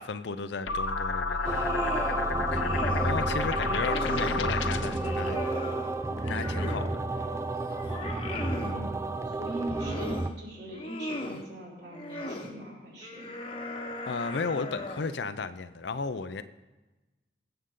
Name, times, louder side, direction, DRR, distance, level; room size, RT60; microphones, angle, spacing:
voice 1, 0.0-1.8 2.3-5.4 6.2-7.0 7.8-7.9 14.1-16.4, left 4 dB, 70° left, 0.5 m, -35 dB
sound 1, 0.7-5.1, left 3 dB, 85° left, 0.9 m, -30 dB
sound 2, 1.3-2.2 2.5-3.2 3.6-4.4 4.9-6.9 7.4-8.8 9.4-10.3 10.7-11.4 11.9-12.5 13.0-15.2, left 1 dB, 30° left, 1.1 m, -38 dB
sound 3, 1.4-10.3, right 2 dB, 15° right, 0.4 m, -31 dB
voice 2, 8.6-13.3, right 1 dB, 60° right, 5.2 m, -41 dB
22.0 x 7.9 x 3.8 m
head